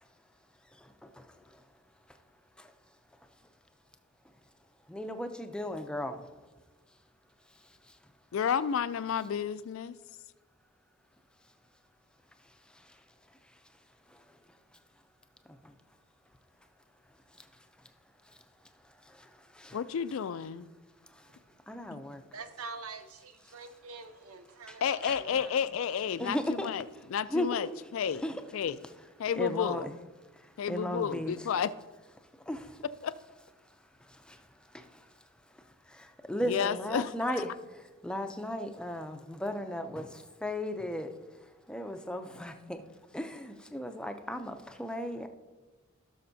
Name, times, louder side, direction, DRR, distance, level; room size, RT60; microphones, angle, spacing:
voice 1, 4.9-6.2 19.2-19.3 19.6-19.8 21.7-22.2 24.7-24.8 25.0-25.2 26.2-26.7 27.3-27.7 28.2-28.8 29.3-29.9 30.7-31.5 32.5-32.8 34.3-34.4 34.7-34.8 35.9-37.5 38.0-41.1 41.7-42.8 43.1-45.3, left 1 dB, 5° left, 7 dB, 0.5 m, -35 dB
voice 2, 8.3-9.9 19.7-20.7 21.9-22.0 24.8-26.8 27.1-28.2 28.5-28.8 29.2-29.9 30.6-31.7 33.0-33.1 36.4-37.4, left 7 dB, 65° left, 15 dB, 0.3 m, -31 dB
voice 3, 21.3-25.7, right 4 dB, 90° right, 9 dB, 0.8 m, -47 dB
16.5 x 6.5 x 2.7 m, 1.2 s
head